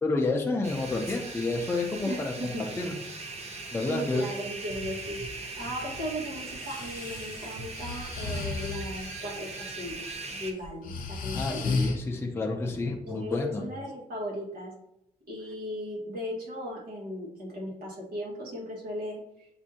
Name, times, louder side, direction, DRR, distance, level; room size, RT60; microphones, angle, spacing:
voice 1, 0.0-2.3 2.8-2.9 3.7-4.2 11.4-13.6, left 3 dB, 15° left, 1 dB, 0.5 m, -29 dB
sound 1, 0.6-10.5, right 3 dB, 45° right, 0.7 m, -40 dB
voice 2, 2.0-2.6 3.8-10.1 10.4-11.6 13.0-14.7 15.3-19.5, equal, 90° right, -4 dB, 1.6 m, -37 dB
Breathing, 6.5-9.1 9.9-10.3 10.6-12.0, left 4 dB, 60° left, 0.6 m, -33 dB
7.2 x 2.6 x 2.7 m, 0.79 s
wide cardioid pair, 155°, 15 cm